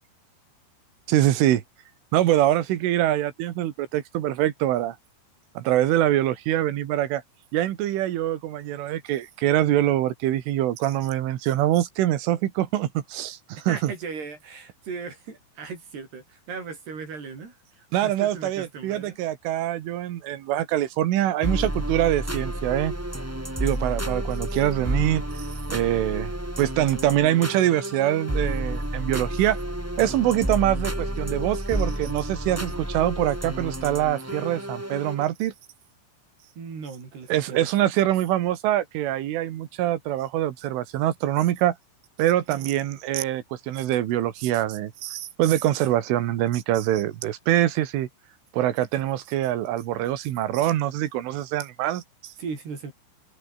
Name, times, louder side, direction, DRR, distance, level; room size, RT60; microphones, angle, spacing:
voice 1, 1.1-1.6 2.1-5.0 5.6-7.2 7.5-13.4 13.7-13.9 17.9-22.9 23.6-26.3 26.6-29.6 30.0-35.5 37.3-41.8 42.2-48.1 48.5-52.3, right 13 dB, 85° right, 4.3 m, -24 dB
voice 2, 13.6-19.2 36.6-37.7 42.5-42.7 52.4-52.9, right 5 dB, 55° right, 8.3 m, -37 dB
sound 1, 21.4-35.2, right 1 dB, 10° right, 0.7 m, -30 dB
omnidirectional pair, 5.5 m